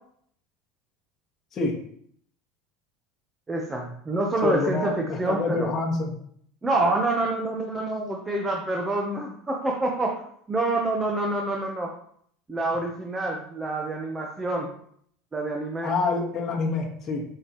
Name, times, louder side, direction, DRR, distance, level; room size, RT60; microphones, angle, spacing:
voice 1, 3.5-5.7 6.6-10.2 10.5-11.9 12.5-14.7 15.3-15.9, right 2 dB, 15° right, 0 dB, 1.0 m, -27 dB
voice 2, 4.4-6.1 15.8-17.2, left 3 dB, 25° left, -4 dB, 1.6 m, -27 dB
9.0 x 6.8 x 3.1 m, 0.65 s
supercardioid pair, 155°, 0 cm